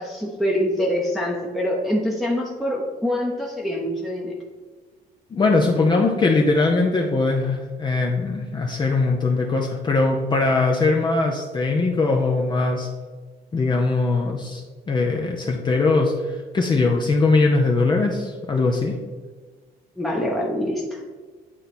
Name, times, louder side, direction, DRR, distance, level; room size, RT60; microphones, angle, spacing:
voice 1, 0.0-4.3 20.0-21.0, equal, ahead, -3 dB, 0.9 m, -25 dB
voice 2, 5.3-12.9 13.5-19.0, left 3 dB, 25° left, 1 dB, 0.7 m, -21 dB
8.9 x 3.9 x 4.3 m, 1.4 s
cardioid pair, 110°, 17 cm